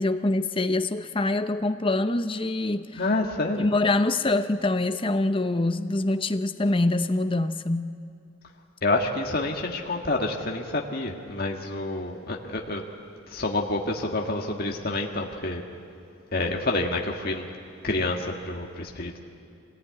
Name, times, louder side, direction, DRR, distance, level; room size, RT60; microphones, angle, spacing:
voice 1, 0.0-3.0 3.6-7.9, left 2 dB, 25° left, 10 dB, 0.7 m, -25 dB
voice 2, 3.0-3.7 8.8-12.8 13.3-15.6 16.3-17.4 17.8-19.2, left 2 dB, 45° left, 0 dB, 1.6 m, -28 dB
24.5 x 18.5 x 9.6 m, 2.5 s
head